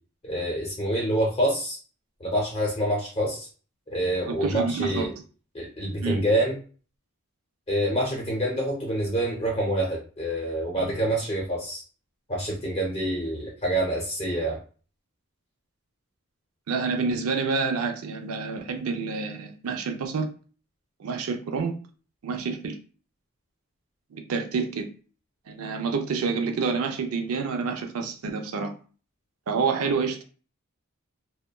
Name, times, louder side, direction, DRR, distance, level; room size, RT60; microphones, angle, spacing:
voice 1, 0.2-1.8 2.2-3.5 3.9-5.1 5.5-6.6 7.7-11.8 12.3-14.6, right 1 dB, 25° left, -3 dB, 0.6 m, -26 dB
voice 2, 4.3-5.1 6.0-6.2 10.8-10.9 16.7-20.3 21.0-21.8 22.2-22.7 24.1-24.9 25.5-28.7 29.5-30.2, right 4 dB, 80° right, 5 dB, 0.4 m, -28 dB
2.8 x 2.2 x 2.2 m, 0.38 s
head